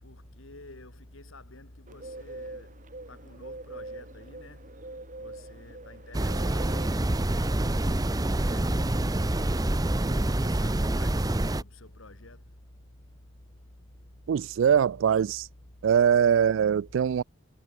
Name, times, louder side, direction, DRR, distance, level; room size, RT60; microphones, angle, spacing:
voice 1, 0.0-2.7 3.1-4.6 5.2-9.2 10.0-12.4, left 2 dB, 80° left, 3.3 m, -49 dB
Bird, 1.9-10.2, right 2 dB, 40° right, 2.6 m, -45 dB
sound 1, 6.1-11.6, right 1 dB, 20° right, 0.7 m, -26 dB
voice 2, 14.3-15.5 15.8-17.2, right 8 dB, 70° right, 0.3 m, -22 dB
head